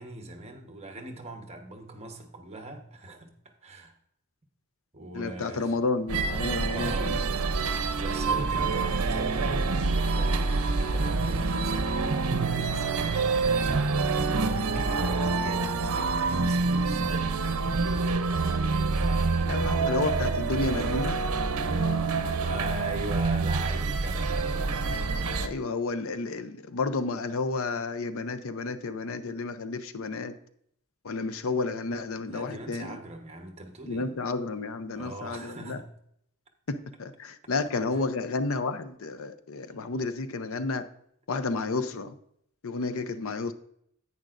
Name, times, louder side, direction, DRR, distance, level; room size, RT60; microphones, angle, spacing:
voice 1, 0.0-3.9 4.9-5.9 6.7-7.2 8.0-13.6 13.9-17.2 22.4-24.3 32.3-34.1 34.9-35.9 37.9-38.0, right 1 dB, 30° right, 1.1 m, -40 dB
voice 2, 5.1-7.2 19.5-21.2 25.4-30.3 31.0-33.0 33.9-35.8 36.7-40.8 41.3-42.1 42.6-43.5, left 3 dB, 65° left, 0.6 m, -31 dB
sound 1, 6.1-25.5, right 4 dB, 75° right, 0.7 m, -27 dB
10.5 x 8.6 x 2.5 m
head